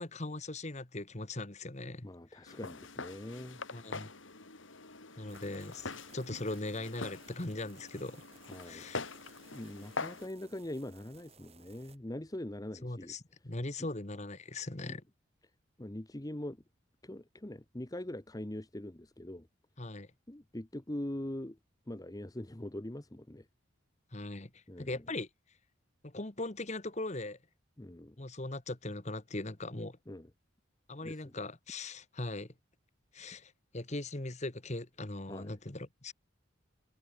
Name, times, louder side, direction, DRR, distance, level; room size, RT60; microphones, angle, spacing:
voice 1, 0.0-2.6 3.7-4.1 5.2-8.2 8.6-9.0 12.8-15.0 19.8-20.1 24.1-25.3 26.0-27.4 28.2-30.0 30.9-32.5 33.1-36.1, left 2 dB, 35° left, 1.5 m, -40 dB
voice 2, 2.0-3.6 5.1-5.3 8.5-9.2 9.5-13.1 14.8-15.0 15.8-16.6 17.0-19.5 20.3-21.6 21.9-23.5 24.7-25.0 27.8-28.2 30.1-30.3 31.0-31.3 35.3-35.6, left 1 dB, 20° left, 0.9 m, -42 dB
Walk footsteps, 2.5-10.3, left 3 dB, 70° left, 3.1 m, -44 dB
sound 1, 5.3-12.0, right 4 dB, 30° right, 3.5 m, -60 dB
head